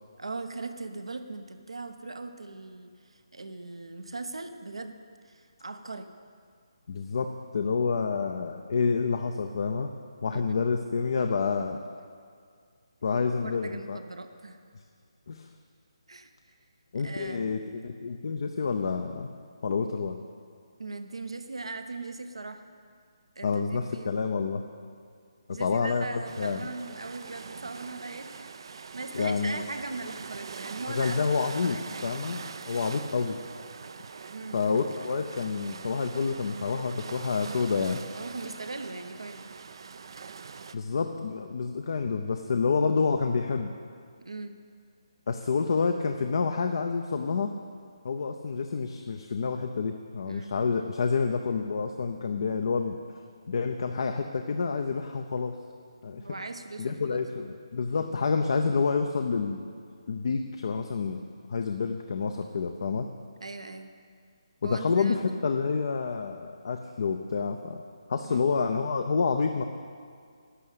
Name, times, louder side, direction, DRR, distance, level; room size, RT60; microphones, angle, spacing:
voice 1, 0.2-5.0 5.2-6.1 10.3-10.6 13.4-14.6 16.1-16.3 17.0-17.6 20.8-22.6 23.3-24.2 25.5-28.4 28.7-32.0 34.3-34.6 38.1-39.5 44.2-44.6 50.3-50.5 56.1-57.5 63.4-63.9 64.6-65.5 68.2-68.5, right 3 dB, 75° right, 8 dB, 0.9 m, -40 dB
voice 2, 6.9-9.9 10.2-11.8 13.0-14.0 15.3-15.5 16.9-19.3 19.6-20.2 23.4-24.6 25.5-26.7 27.3-27.4 29.1-29.6 30.9-32.4 32.7-33.4 34.5-38.0 40.7-43.7 45.3-47.5 48.0-53.0 53.5-55.5 56.0-56.3 56.8-59.7 60.1-63.1 64.6-67.8 68.1-69.6, left 5 dB, 55° left, 5 dB, 0.6 m, -28 dB
sound 1, 26.2-40.8, right 5 dB, 55° right, 0.5 m, -43 dB
11.5 x 6.5 x 8.1 m, 2.1 s
figure-of-eight pair, 150°, 3 cm